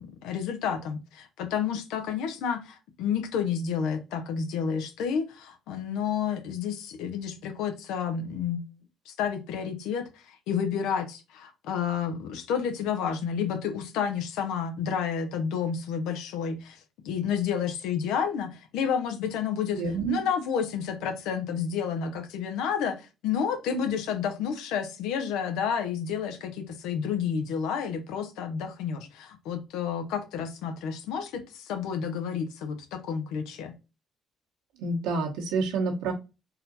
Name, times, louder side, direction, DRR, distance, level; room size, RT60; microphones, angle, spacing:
voice 1, 0.0-8.7 9.1-16.8 17.0-19.8 20.1-33.7, left 7 dB, 85° left, 0.7 m, -30 dB
voice 2, 19.7-20.2 34.8-36.1, right 4 dB, 90° right, 1.3 m, -28 dB
4.1 x 2.7 x 3.9 m
supercardioid pair, 75°, 0 cm